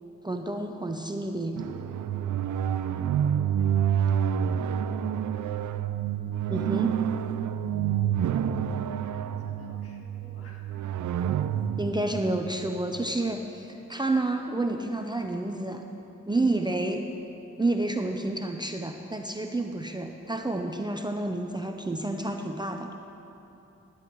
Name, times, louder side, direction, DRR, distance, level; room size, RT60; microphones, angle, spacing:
voice 1, 0.2-1.6 6.5-7.0 11.8-15.8 16.3-17.0 17.6-22.9, right 2 dB, 15° right, 4 dB, 0.6 m, -29 dB
sound 1, 1.6-13.2, right 9 dB, 80° right, 0.5 m, -28 dB
voice 2, 2.1-2.9 3.9-5.1 8.8-10.6, left 2 dB, 50° left, -2 dB, 2.1 m, -56 dB
15.5 x 11.0 x 3.1 m, 2.9 s
cardioid pair, 70°, 30 cm